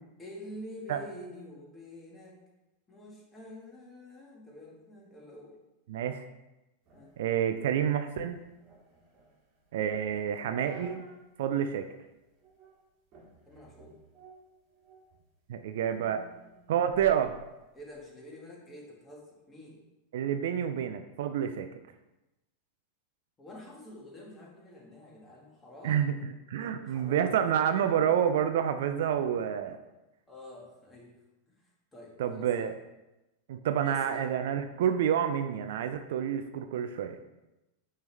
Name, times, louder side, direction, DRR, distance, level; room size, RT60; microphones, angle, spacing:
voice 1, 0.2-2.4 2.9-5.6 6.9-7.1 10.1-10.2 13.5-14.0 15.9-16.8 17.7-19.8 23.4-26.1 26.9-28.2 30.3-31.2 31.5-32.7 33.8-34.3, left 1 dB, 15° left, -2 dB, 1.5 m, -48 dB
voice 2, 5.9-6.2 7.2-8.4 9.7-11.1 11.4-11.9 15.5-16.2 16.7-17.3 20.1-21.7 25.8-26.1 26.5-29.8 32.2-32.7 33.5-37.2, right 9 dB, 55° right, 8 dB, 0.4 m, -28 dB
sound 1, 6.9-11.3 11.7-11.8 12.4-12.8 13.1-15.2 15.6-18.0, right 2 dB, 30° right, 1.6 m, -54 dB
9.1 x 3.3 x 3.2 m, 0.97 s
figure-of-eight pair, 90°, 0 cm